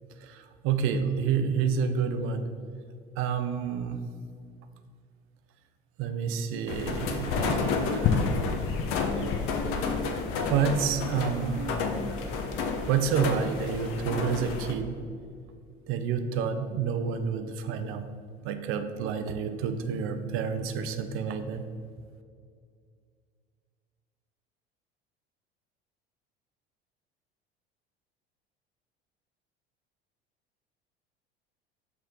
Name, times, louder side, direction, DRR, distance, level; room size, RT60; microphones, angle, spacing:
voice 1, 0.2-2.5 3.2-4.0 6.0-8.9 10.5-11.8 12.9-15.0 15.9-18.1 18.4-21.6, right 6 dB, 45° right, 8 dB, 0.5 m, -29 dB
sound 1, 6.7-14.7, left 4 dB, 45° left, 0.7 m, -30 dB
5.9 x 3.1 x 5.3 m, 2.2 s
figure-of-eight pair, 70°, 30 cm